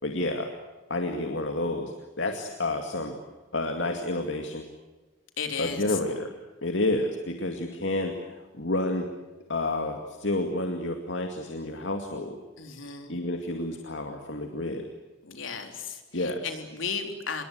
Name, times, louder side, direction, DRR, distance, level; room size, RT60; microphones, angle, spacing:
voice 1, 0.0-0.5 0.9-3.2 3.5-4.7 5.6-6.3 6.6-9.1 9.5-12.4 13.1-14.9 16.1-16.5, left 2 dB, 70° left, 5 dB, 2.3 m, -30 dB
voice 2, 5.4-6.0 12.6-13.1 15.2-17.4, left 5 dB, 85° left, 5 dB, 3.7 m, -35 dB
27.0 x 22.0 x 8.1 m, 1.2 s
head